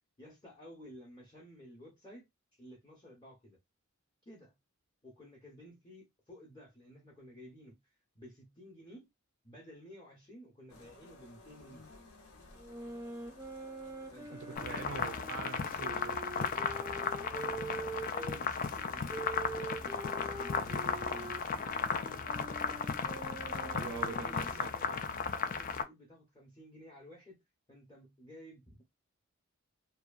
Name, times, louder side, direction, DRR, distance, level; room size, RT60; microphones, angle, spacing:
voice 1, 0.2-2.3 2.5-3.6 4.3-4.5 5.0-7.8 8.1-9.1 9.4-11.9 14.1-14.8 16.6-22.5 23.4-25.0 25.4-27.4 27.7-28.9, equal, 20° left, 0.7 m, -54 dB
sound 1, 10.7-24.7, left 2 dB, 75° left, 0.8 m, -57 dB
sound 2, 12.6-18.4 19.1-24.6, right 2 dB, 15° right, 0.5 m, -44 dB
voice 2, 14.3-16.2 23.6-25.0, right 6 dB, 70° right, 0.4 m, -45 dB
sound 3, 14.6-25.8, left 6 dB, 40° left, 0.3 m, -35 dB
2.7 x 2.3 x 2.3 m
head